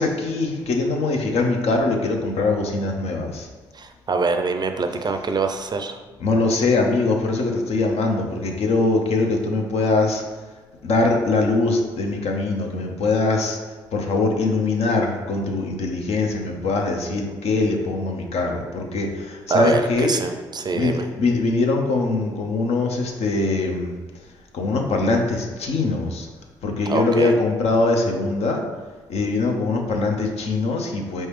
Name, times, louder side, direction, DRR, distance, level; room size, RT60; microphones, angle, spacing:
voice 1, 0.0-3.5 6.2-10.2 10.8-13.6 13.9-20.1 20.7-23.9 24.5-26.3 26.6-28.6 29.1-31.3, left 3 dB, 60° left, 2 dB, 0.7 m, -22 dB
voice 2, 3.7-6.0 19.5-21.1 26.9-27.4, right 4 dB, 35° right, 7 dB, 0.5 m, -24 dB
4.4 x 3.2 x 3.1 m, 1.3 s
hypercardioid pair, 45°, 12 cm